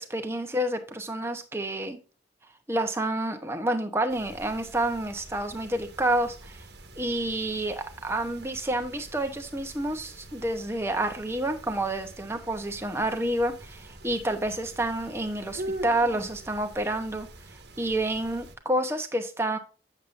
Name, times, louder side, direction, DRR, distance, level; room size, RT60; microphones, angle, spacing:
voice 1, 0.0-2.0 2.7-6.6 7.0-17.3 17.8-19.6, right 1 dB, 15° right, 6 dB, 0.9 m, -29 dB
sound 1, 4.1-18.6, right 1 dB, 65° right, 1.2 m, -44 dB
8.3 x 7.4 x 2.6 m, 0.34 s
head